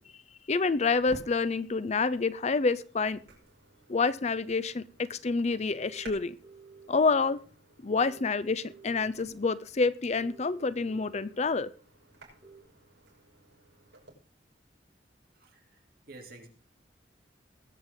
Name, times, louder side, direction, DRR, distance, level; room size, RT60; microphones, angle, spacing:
voice 1, 0.5-3.2 3.9-6.3 6.9-7.4 7.8-11.7, left 4 dB, 40° left, 16 dB, 0.5 m, -28 dB
sound 1, 0.9-14.1, right 2 dB, 90° right, 6.0 m, -58 dB
Fireworks, 1.1-4.0, right 1 dB, 75° right, 2.9 m, -51 dB
sound 2, 5.8-6.9 8.0-9.1 10.2-11.3 12.4-12.6, right 4 dB, 35° right, 3.1 m, -52 dB
voice 2, 15.3-16.5, right 2 dB, 55° right, 2 dB, 2.9 m, -51 dB
20.5 x 7.9 x 3.7 m, 0.36 s
head